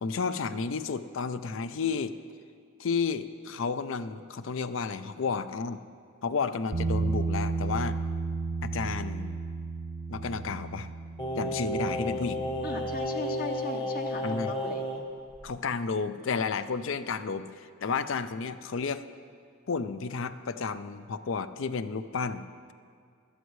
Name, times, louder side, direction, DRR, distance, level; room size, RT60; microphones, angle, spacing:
voice 1, 0.0-2.2 2.8-5.8 6.2-8.0 8.6-9.4 10.1-10.9 11.4-12.5 14.2-14.5 15.4-19.1 19.7-22.7, left 5 dB, 65° left, 12 dB, 0.5 m, -32 dB
Bass guitar, 6.7-13.0, right 3 dB, 45° right, 0.7 m, -33 dB
Singing, 11.2-15.0 15.4-15.5, equal, 20° left, 1.1 m, -32 dB
voice 2, 12.6-14.8, left 2 dB, 45° left, 4 dB, 1.0 m, -37 dB
16.0 x 12.5 x 3.2 m, 2.2 s
head